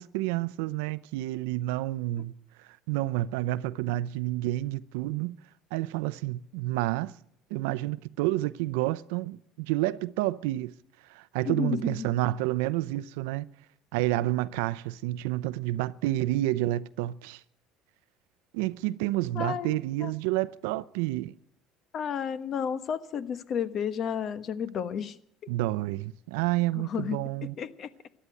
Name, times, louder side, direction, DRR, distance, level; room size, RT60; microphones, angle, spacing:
voice 1, 0.0-2.3 2.9-5.4 5.7-7.1 7.5-10.7 11.1-13.5 13.9-17.4 18.5-21.3 25.5-27.6, right 16 dB, 90° right, 0.6 m, -29 dB
voice 2, 11.4-12.1 19.3-20.1 21.9-25.2 26.7-27.2 27.6-27.9, left 8 dB, 45° left, 1.1 m, -32 dB
14.0 x 11.0 x 9.1 m
supercardioid pair, 115°, 0 cm